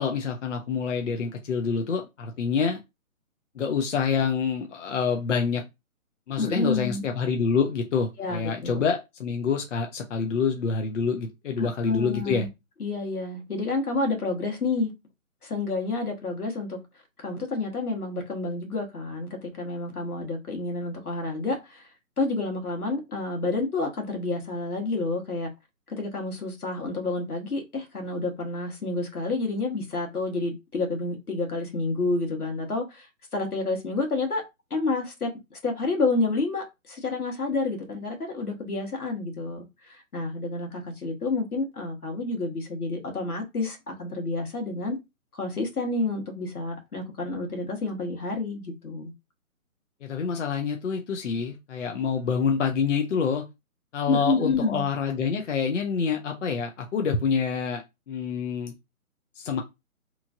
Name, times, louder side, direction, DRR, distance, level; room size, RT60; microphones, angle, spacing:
voice 1, 0.0-2.8 3.5-5.6 6.3-12.5 50.0-53.4 53.9-58.7 59.4-59.6, left 6 dB, 55° left, 0.7 m, -27 dB
voice 2, 6.4-7.0 8.2-8.8 11.6-12.5 12.8-14.9 15.4-16.8 17.2-21.9 22.2-25.5 25.9-34.4 34.7-45.0 45.3-49.1 54.1-54.9, left 3 dB, 90° left, 1.4 m, -29 dB
3.0 x 2.5 x 2.4 m
figure-of-eight pair, 150°, 43 cm